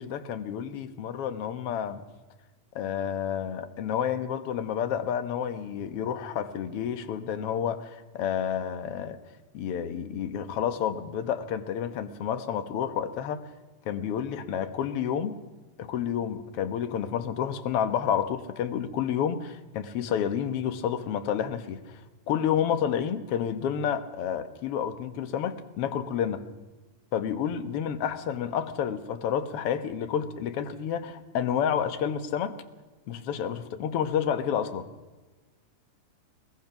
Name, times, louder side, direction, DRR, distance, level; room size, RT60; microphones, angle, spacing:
voice 1, 0.0-2.0 2.8-9.2 9.5-13.4 13.9-15.3 15.8-21.8 22.3-26.4 27.1-32.5 33.1-34.9, left 8 dB, 60° left, 10 dB, 1.9 m, -30 dB
22.0 x 20.5 x 6.0 m, 1.2 s
omnidirectional pair, 3.5 m